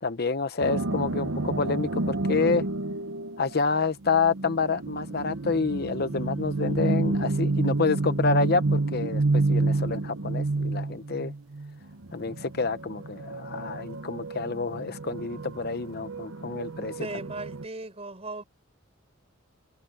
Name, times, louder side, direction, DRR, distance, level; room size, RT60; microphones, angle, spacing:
voice 1, 0.0-2.6 3.4-11.3 12.1-17.1, left 4 dB, 50° left, 0.9 m, -28 dB
sound 1, 0.6-17.6, right 2 dB, 80° right, 1.0 m, -29 dB
voice 2, 17.0-18.4, right 2 dB, 30° right, 4.6 m, -37 dB
head